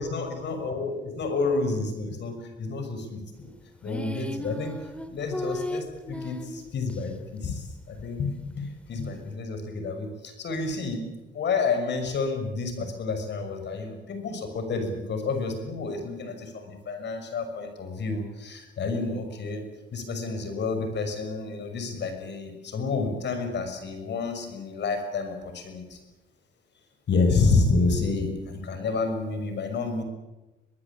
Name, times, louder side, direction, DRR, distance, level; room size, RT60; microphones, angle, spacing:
voice 1, 0.0-3.5 3.8-4.8 5.1-11.1 11.3-19.6 19.9-26.0 27.1-30.0, left 4 dB, 60° left, 7 dB, 6.2 m, -29 dB
sound 1, 3.8-7.0, left 1 dB, 5° left, 2.4 m, -35 dB
23.5 x 20.0 x 8.7 m, 1.1 s
cardioid pair, 90°, 20 cm